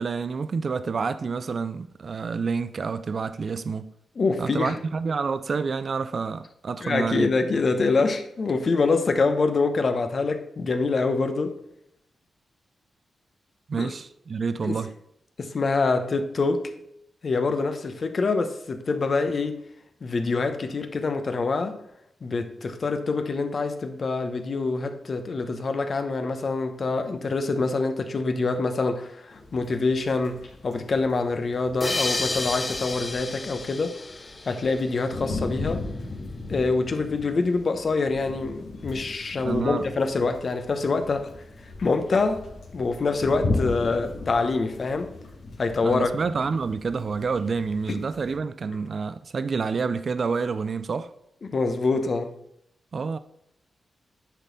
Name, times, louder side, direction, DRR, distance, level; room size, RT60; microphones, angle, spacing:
voice 1, 0.0-3.9 4.4-7.3 13.7-14.9 39.4-39.8 45.8-51.1 52.9-53.2, right 5 dB, 55° right, 0.4 m, -28 dB
voice 2, 4.2-4.8 6.8-11.5 13.8-13.9 14.6-14.8 15.4-16.7 17.2-19.6 20.0-21.8 22.2-34.0 34.4-35.9 36.5-41.3 41.6-42.5 42.7-45.1 45.6-46.1 47.9-48.0 51.4-52.4, left 3 dB, 50° left, 0.9 m, -25 dB
sound 1, 29.3-48.4, left 2 dB, 85° left, 1.9 m, -37 dB
sound 2, 31.8-35.1, left 2 dB, 30° left, 0.6 m, -31 dB
9.8 x 4.2 x 4.0 m
cardioid pair, 75°, 0 cm